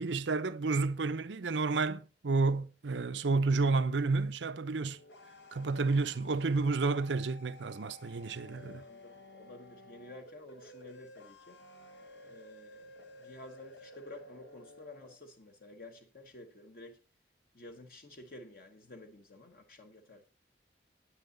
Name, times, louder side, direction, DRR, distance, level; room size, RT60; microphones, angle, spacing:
voice 1, 0.0-5.0 5.5-8.8, right 3 dB, 90° right, 0.7 m, -30 dB
sound 1, 4.7-15.1, left 1 dB, 90° left, 1.5 m, -54 dB
voice 2, 5.8-6.1 8.6-11.6 12.2-17.0 17.5-20.3, left 2 dB, 55° left, 1.1 m, -52 dB
9.9 x 9.3 x 3.9 m
head